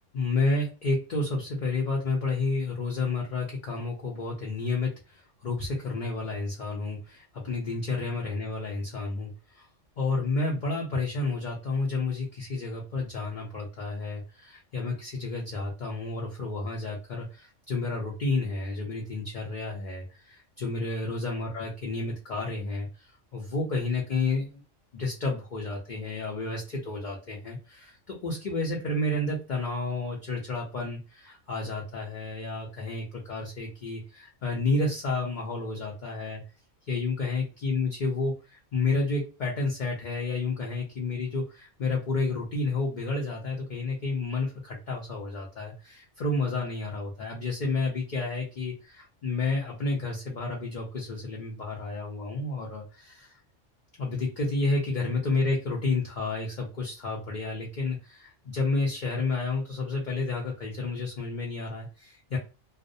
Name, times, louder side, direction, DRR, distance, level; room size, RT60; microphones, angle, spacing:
voice 1, 0.1-9.7 10.0-24.6 24.9-36.4 36.9-53.4 54.0-62.4, left 3 dB, 50° left, -2 dB, 0.7 m, -31 dB
2.5 x 2.0 x 2.5 m, 0.31 s
omnidirectional pair, 1.3 m